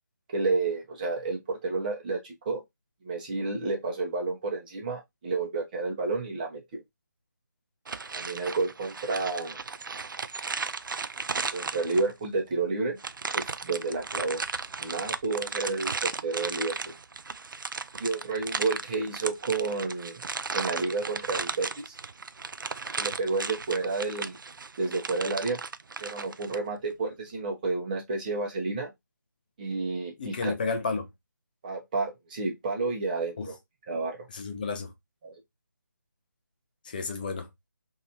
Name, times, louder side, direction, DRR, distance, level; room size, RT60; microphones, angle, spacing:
voice 1, 0.3-2.6 3.0-6.8 8.1-9.6 11.5-13.0 13.3-14.4 14.8-16.9 18.0-20.2 20.5-21.9 23.0-24.4 24.8-25.6 26.0-28.9 29.6-30.5 31.6-33.6 33.9-34.3 35.2-35.3, right 3 dB, 25° right, 1.1 m, -30 dB
sound 1, 7.9-12.3 13.0-26.6, right 4 dB, 85° right, 0.4 m, -35 dB
voice 2, 30.2-31.1 33.4-33.6 34.3-34.9 36.8-37.5, left 4 dB, 25° left, 0.5 m, -32 dB
3.0 x 2.8 x 2.7 m
figure-of-eight pair, 165°, 11 cm